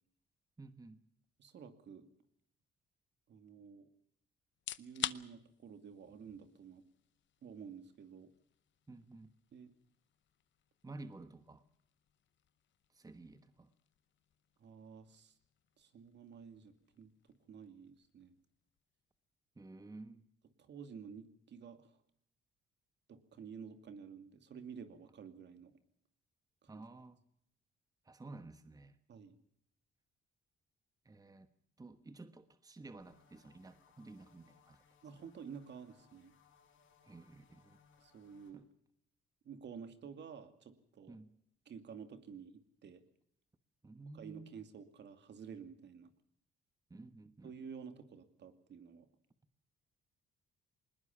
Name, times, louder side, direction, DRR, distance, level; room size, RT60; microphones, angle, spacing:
voice 1, 0.6-1.0 8.9-9.3 10.8-11.6 12.9-13.7 19.6-20.2 26.7-27.2 28.0-29.0 31.0-31.5 31.8-34.8 37.0-37.8 38.5-38.6 41.1-41.3 43.8-44.5 46.9-47.5, right 2 dB, 20° right, 11 dB, 1.3 m, -52 dB
voice 2, 1.4-2.1 3.3-3.9 4.8-6.8 7.4-8.3 9.5-9.7 14.6-15.3 15.8-17.1 17.5-18.3 20.6-22.0 23.1-25.7 26.6-26.8 29.1-29.4 35.0-36.3 38.0-38.6 39.4-41.2 41.7-43.0 44.1-46.1 47.4-49.1, right 6 dB, 60° right, 9 dB, 2.5 m, -51 dB
sound 1, 4.5-19.3, left 12 dB, 70° left, 0.8 m, -51 dB
sound 2, 33.0-38.5, left 6 dB, 85° left, 6.5 m, -68 dB
20.5 x 20.0 x 7.1 m, 0.69 s
cardioid pair, 90°, 20 cm